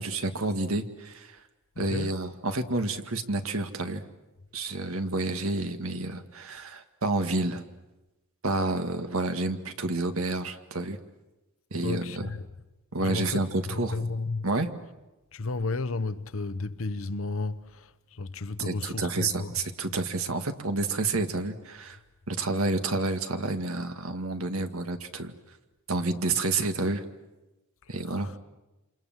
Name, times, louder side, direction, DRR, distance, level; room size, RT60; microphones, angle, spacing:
voice 1, 0.0-1.4 1.8-4.0 4.5-7.6 8.4-11.0 11.7-12.3 12.9-14.0 14.4-14.7 18.6-22.0 22.3-25.3 25.9-27.0 27.9-28.3, right 2 dB, 75° right, 1.9 m, -29 dB
voice 2, 1.8-2.1 11.8-12.5 13.0-14.5 15.3-19.5 28.2-28.3, left 3 dB, 65° left, 1.0 m, -33 dB
28.0 x 27.5 x 7.5 m
head